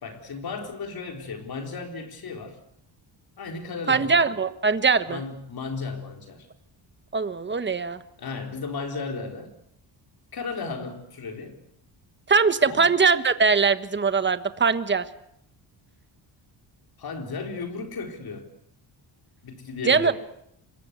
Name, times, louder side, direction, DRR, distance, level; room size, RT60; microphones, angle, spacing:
voice 1, 0.0-2.6 3.4-4.3 5.1-6.5 8.2-9.5 10.3-11.6 12.7-12.9 17.0-18.5 19.4-20.1, left 4 dB, 50° left, 5 dB, 4.1 m, -35 dB
voice 2, 3.9-5.2 7.1-8.0 12.3-15.0 19.8-20.1, right 5 dB, 25° right, 12 dB, 1.3 m, -21 dB
26.0 x 22.0 x 8.2 m, 0.76 s
wide cardioid pair, 145°, 46 cm